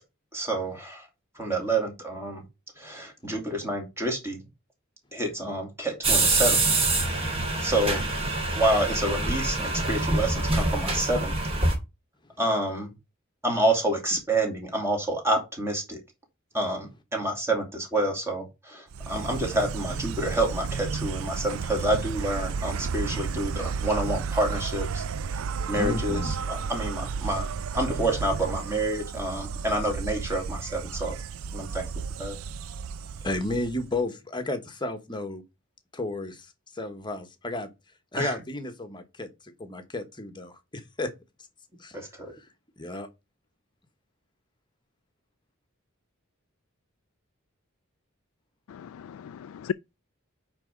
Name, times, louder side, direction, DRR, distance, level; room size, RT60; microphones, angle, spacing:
voice 1, 0.3-1.1 1.3-2.4 2.8-4.4 5.1-6.6 7.6-8.2 8.5-11.3 12.4-12.9 13.4-16.0 16.5-25.0 25.7-27.5 27.7-31.2 31.5-31.9 32.2-32.4 38.2-38.3 41.9-42.3, right 1 dB, 15° right, 2.6 m, -28 dB
sound 1, 6.0-11.7, right 2 dB, 30° right, 2.5 m, -25 dB
Insect, 18.9-34.0, right 5 dB, 70° right, 0.4 m, -33 dB
voice 2, 25.7-26.5 33.2-35.4 35.9-37.7 38.1-41.1 41.8-42.0 42.3-42.5 42.8-43.1, left 2 dB, 20° left, 1.2 m, -33 dB
voice 3, 48.7-49.7, left 7 dB, 75° left, 0.3 m, -35 dB
8.9 x 3.6 x 5.3 m
head